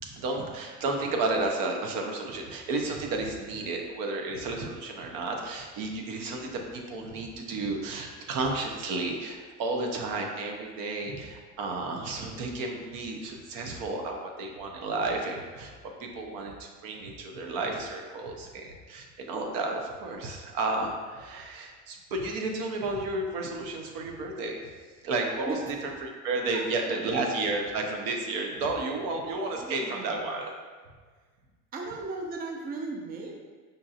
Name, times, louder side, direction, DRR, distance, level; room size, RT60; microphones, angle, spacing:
voice 1, 0.0-15.7 16.0-24.6 25.0-25.5 26.0-30.5, right 3 dB, 70° right, 2 dB, 0.7 m, -32 dB
voice 2, 29.4-30.4 31.7-33.3, right 3 dB, 25° right, 1 dB, 0.5 m, -38 dB
5.2 x 2.6 x 2.4 m, 1.5 s
supercardioid pair, 100°, 35 cm